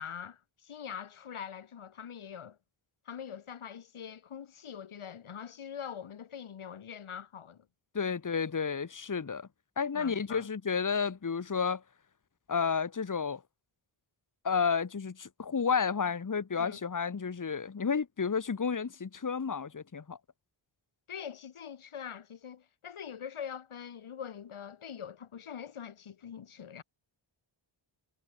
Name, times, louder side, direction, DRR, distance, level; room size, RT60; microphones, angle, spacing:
voice 1, 0.0-2.6 3.1-7.7 9.9-10.5 16.6-16.8 21.1-26.8, left 8 dB, 85° left, 1.9 m, -43 dB
voice 2, 7.9-9.5 9.8-11.8 12.5-13.4 14.4-20.2, left 6 dB, 40° left, 1.5 m, -31 dB
wide cardioid pair, 90°, 48 cm